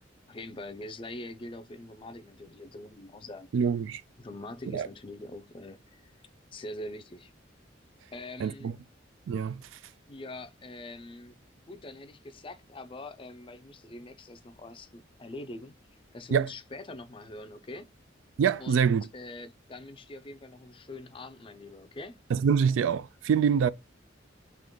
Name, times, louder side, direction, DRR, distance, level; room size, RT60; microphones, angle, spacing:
voice 1, 0.3-3.5 4.2-6.1 6.5-7.3 8.1-8.8 10.1-11.4 11.7-15.7 16.1-17.9 18.6-22.2, left 2 dB, 25° left, 0.4 m, -43 dB
voice 2, 3.5-4.0 4.7-4.9 8.4-8.7 9.3-9.7 16.3-16.5 18.4-19.1 22.3-23.7, right 7 dB, 80° right, 0.3 m, -25 dB
3.7 x 2.9 x 3.6 m
head